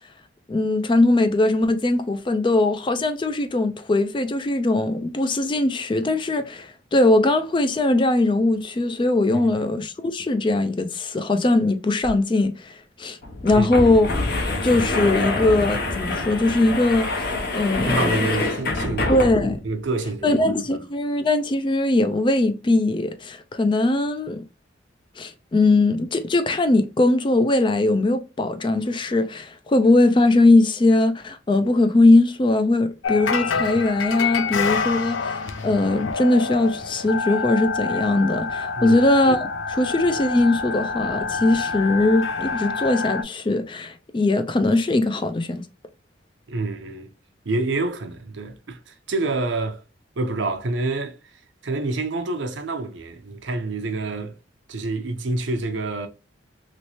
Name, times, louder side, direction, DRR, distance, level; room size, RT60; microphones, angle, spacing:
voice 1, 0.5-13.2 13.4-14.1 14.6-18.2 19.1-19.6 20.2-24.4 25.2-45.6, left 2 dB, 25° left, 0.4 m, -20 dB
voice 2, 9.3-9.7 13.5-13.7 17.8-19.1 19.6-20.4 38.8-39.0 46.5-47.1 47.4-49.8 50.2-51.2 51.6-54.3 54.7-56.1, right 2 dB, 70° right, 0.6 m, -27 dB
sound 1, 12.0-12.1 12.4-12.5 13.2-19.6, left 2 dB, 55° left, 0.9 m, -26 dB
sound 2, 33.0-43.2, left 5 dB, 90° left, 0.5 m, -27 dB
3.1 x 3.0 x 2.7 m
head